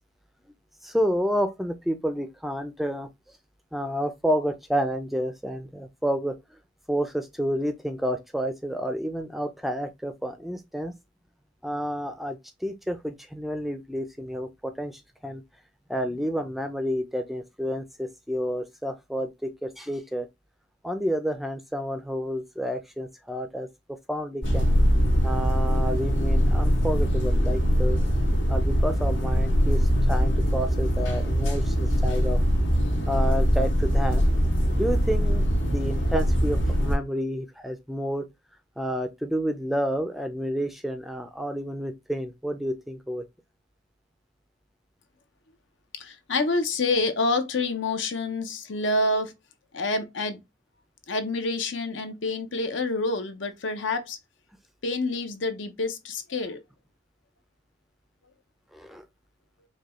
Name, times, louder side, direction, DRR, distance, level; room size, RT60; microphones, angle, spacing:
voice 1, 0.8-3.1 3.7-6.4 6.9-10.9 11.6-15.4 15.9-20.3 20.8-24.7 25.2-28.0 28.5-32.4 33.1-34.2 34.7-38.3 38.8-43.2 58.7-59.0, equal, ahead, 0.4 m, -30 dB
sound 1, 24.4-37.0, equal, 90° left, 2.1 m, -22 dB
voice 2, 46.0-49.3 49.7-50.4 51.1-54.2 54.8-56.6, left 2 dB, 75° left, 0.7 m, -27 dB
5.0 x 2.3 x 3.0 m
head